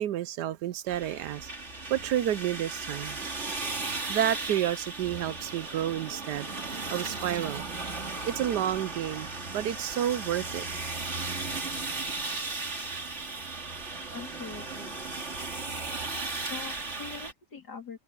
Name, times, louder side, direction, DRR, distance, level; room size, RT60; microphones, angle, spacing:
voice 1, 0.0-1.5 1.9-3.3 4.1-6.5 6.9-7.6 8.3-10.7 12.1-12.3, right 11 dB, 75° right, 1.3 m, -30 dB
sound 1, 0.9-17.3, right 3 dB, 40° right, 2.9 m, -36 dB
voice 2, 14.1-15.0 16.5-18.0, left 6 dB, 65° left, 3.8 m, -42 dB
omnidirectional pair, 1.8 m